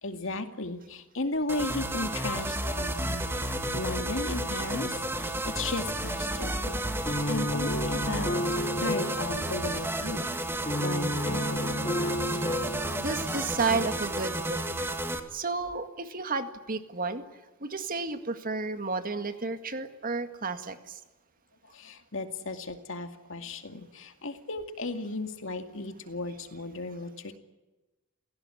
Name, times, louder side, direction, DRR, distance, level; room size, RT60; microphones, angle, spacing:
voice 1, 0.0-3.2 3.7-12.4 13.7-13.8 21.6-27.4, left 2 dB, 60° left, 7 dB, 2.3 m, -35 dB
sound 1, 1.5-15.2, right 1 dB, 10° right, 2.0 m, -32 dB
sound 2, 6.2-14.1, left 1 dB, 25° left, 2.5 m, -33 dB
voice 2, 13.0-14.9 15.3-17.2 17.6-21.0, right 4 dB, 40° right, 9 dB, 2.0 m, -32 dB
29.0 x 17.0 x 10.0 m, 1.1 s
head